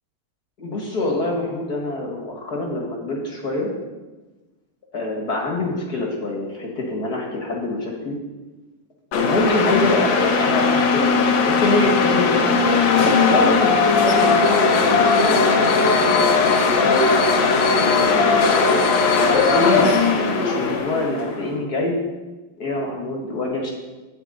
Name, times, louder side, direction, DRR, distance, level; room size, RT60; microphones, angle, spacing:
voice 1, 0.6-3.7 4.9-8.2 9.2-12.6 13.3-18.8 19.3-22.0 22.6-23.7, left 2 dB, 35° left, 0 dB, 2.1 m, -25 dB
sound 1, 9.1-21.4, left 4 dB, 70° left, 2.3 m, -18 dB
14.0 x 9.6 x 4.1 m, 1.2 s
omnidirectional pair, 3.3 m